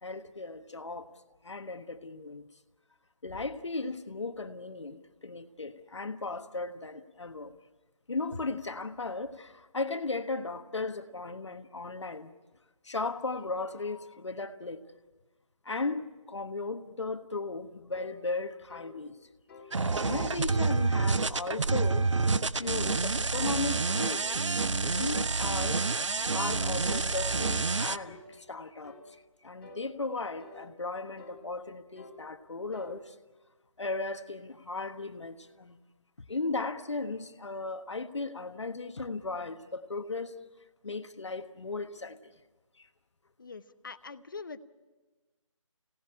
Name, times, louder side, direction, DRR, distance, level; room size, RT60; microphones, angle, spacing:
voice 1, 0.0-1.1 1.4-2.4 3.2-7.5 8.1-12.3 12.8-14.9 15.6-19.2 19.9-22.1 22.5-24.4 24.8-25.8 26.3-33.1 33.8-35.8 36.3-40.4 40.8-42.2 42.8-42.9, left 3 dB, 60° left, 1.3 m, -36 dB
sound 1, 17.9-18.2 18.7-18.9 19.5-19.7 20.2-20.5 21.0-21.3 21.8-22.1 22.6-22.8 23.4-24.4 24.9-25.2 25.7-26.0 26.5-26.7 27.3-27.5 28.0-28.3 28.8-29.1 29.6-29.9 30.4-30.6 31.2-31.4 32.0-32.2 32.7-33.0, left 3 dB, 25° left, 2.8 m, -49 dB
sound 2, 19.7-28.0, right 3 dB, 65° right, 0.8 m, -28 dB
voice 2, 43.4-44.6, left 4 dB, 40° left, 0.9 m, -43 dB
26.0 x 18.0 x 8.7 m
figure-of-eight pair, 165°, 17 cm